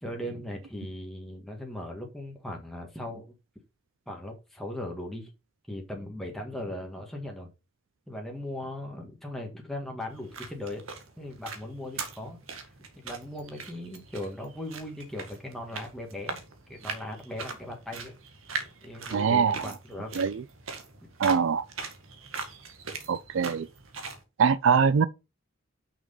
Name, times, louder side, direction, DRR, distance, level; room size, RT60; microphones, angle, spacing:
voice 1, 0.0-3.2 4.1-5.3 5.7-7.5 8.1-10.8 11.2-12.7 13.0-16.4 16.7-18.1 18.8-20.1, left 1 dB, ahead, 1.6 m, -38 dB
sound 1, 10.1-24.2, right 4 dB, 85° right, 1.9 m, -41 dB
voice 2, 19.1-19.6 20.2-20.4 21.2-21.7 23.1-23.7 24.4-25.1, right 6 dB, 65° right, 0.4 m, -23 dB
6.2 x 6.1 x 5.4 m
head